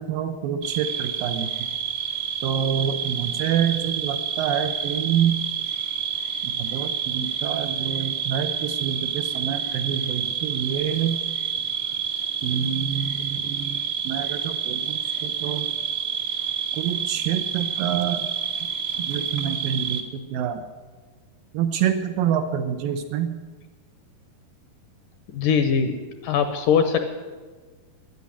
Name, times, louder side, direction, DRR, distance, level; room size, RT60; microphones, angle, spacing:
voice 1, 0.0-1.7 2.4-5.4 6.4-11.2 12.4-15.7 16.7-18.3 19.0-20.6 21.5-23.4, right 8 dB, 75° right, 7 dB, 2.2 m, -27 dB
sound 1, 0.6-20.0, right 8 dB, 60° right, 1.5 m, -28 dB
voice 2, 25.3-26.0 26.2-27.0, left 7 dB, 75° left, 8 dB, 2.1 m, -21 dB
12.5 x 10.5 x 9.7 m, 1.4 s
omnidirectional pair, 4.5 m